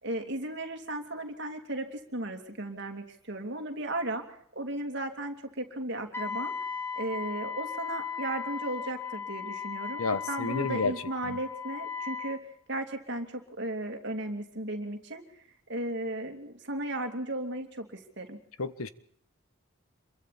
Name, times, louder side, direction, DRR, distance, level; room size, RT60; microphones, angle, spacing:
voice 1, 0.0-12.4 12.7-15.4 15.7-18.4, right 1 dB, 55° right, 5 dB, 3.0 m, -35 dB
Wind instrument woodwind instrument, 6.1-12.4, left 6 dB, 10° left, 2.3 m, -37 dB
voice 2, 10.0-10.9 11.2-11.4 18.6-18.9, left 3 dB, 90° left, 14 dB, 1.3 m, -30 dB
27.0 x 23.0 x 4.3 m, 0.64 s
head